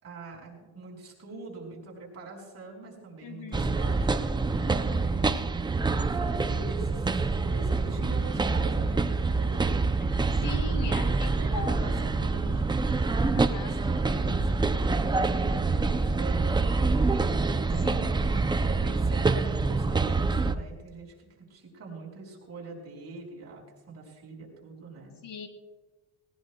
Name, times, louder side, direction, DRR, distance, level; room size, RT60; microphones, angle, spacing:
voice 1, 0.0-5.3 6.1-9.8 10.9-16.5 17.7-18.1 18.6-25.1, right 3 dB, 40° right, -2 dB, 5.3 m, -44 dB
voice 2, 3.2-3.8 10.4-12.0 13.3-13.8 17.8-18.2 25.2-25.5, left 3 dB, 60° left, 6 dB, 2.1 m, -39 dB
sound 1, 3.5-20.5, right 3 dB, 10° right, 0.4 m, -26 dB
19.5 x 18.5 x 2.3 m, 1.3 s
cardioid pair, 140°, 37 cm